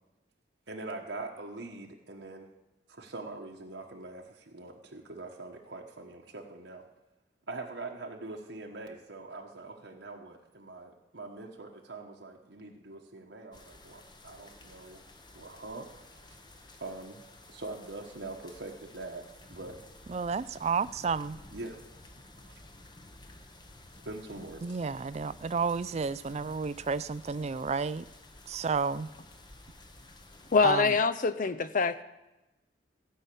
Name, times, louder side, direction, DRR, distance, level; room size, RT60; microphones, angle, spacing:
voice 1, 0.7-2.5 2.9-6.9 7.5-15.0 15.3-15.9 16.8-17.2 17.5-19.8 21.5-21.8 22.4-22.6 24.0-24.6, right 2 dB, 75° right, 0 dB, 1.2 m, -43 dB
sound 1, 13.5-30.7, left 2 dB, 25° left, 1.0 m, -53 dB
voice 2, 20.1-21.4 24.6-28.1 28.5-29.1 30.6-30.9, right 5 dB, 35° right, 16 dB, 0.4 m, -31 dB
voice 3, 30.5-32.0, left 4 dB, 45° left, 14 dB, 0.6 m, -25 dB
16.0 x 5.7 x 8.5 m, 1.0 s
head